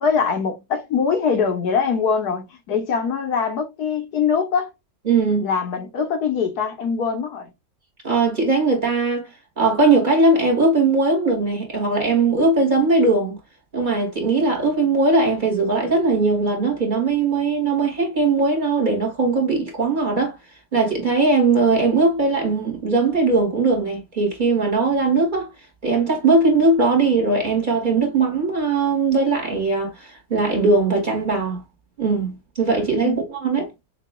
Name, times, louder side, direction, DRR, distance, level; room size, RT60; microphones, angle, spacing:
voice 1, 0.0-4.7 5.4-7.5 33.0-33.2, left 6 dB, 70° left, 1.5 m, -22 dB
voice 2, 5.1-5.5 8.0-13.4 13.7-20.4 20.7-25.5 25.8-31.6 32.0-33.7, right 3 dB, 30° right, 2.1 m, -19 dB
6.7 x 2.9 x 2.3 m
omnidirectional pair, 1.8 m